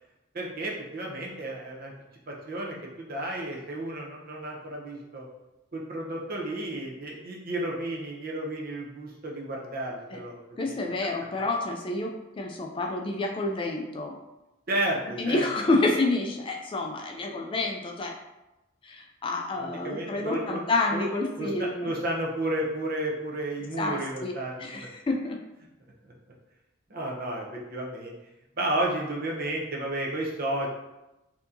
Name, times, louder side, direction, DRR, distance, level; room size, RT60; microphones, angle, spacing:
voice 1, 0.3-1.9 2.3-5.3 5.7-10.7 14.7-15.5 19.6-20.6 20.9-21.1 21.4-24.9 26.0-26.1 26.9-28.1 28.6-30.7, right 1 dB, 45° right, -1 dB, 0.7 m, -32 dB
voice 2, 10.6-14.2 15.2-18.1 18.8-21.9 23.8-24.3 24.6-25.4, left 2 dB, 25° left, 1 dB, 0.3 m, -29 dB
4.5 x 2.8 x 2.6 m, 0.98 s
head